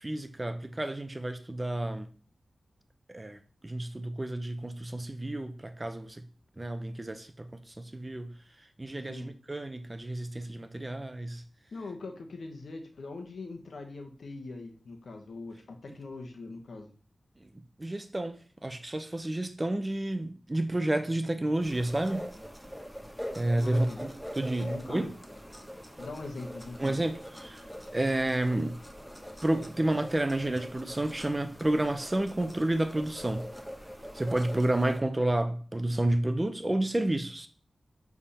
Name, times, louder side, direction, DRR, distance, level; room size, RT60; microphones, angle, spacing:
voice 1, 0.0-2.1 3.1-6.2 6.6-7.5 7.8-8.3 8.8-11.4 17.8-22.3 23.3-25.1 26.8-27.6 27.9-28.8 29.4-33.4 34.1-37.5, right 1 dB, 25° right, 0.6 m, -30 dB
voice 2, 11.7-16.9 23.6-24.0 24.6-25.1 26.0-27.1, left 3 dB, 75° left, 1.1 m, -42 dB
sound 1, 21.6-35.0, equal, ahead, 0.9 m, -43 dB
7.1 x 3.6 x 4.2 m
wide cardioid pair, 75°, 0 cm